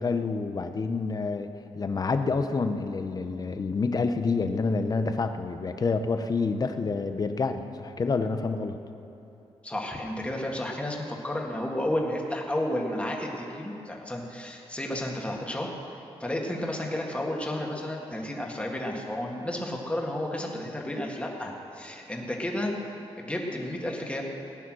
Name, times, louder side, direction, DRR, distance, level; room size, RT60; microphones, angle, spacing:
voice 1, 0.0-8.8, left 4 dB, 35° left, 8 dB, 0.8 m, -28 dB
voice 2, 9.6-15.7 16.2-22.7 23.2-24.4, left 1 dB, 10° left, 0 dB, 1.9 m, -32 dB
18.0 x 10.0 x 6.3 m, 3.0 s
wide cardioid pair, 125°, 11 cm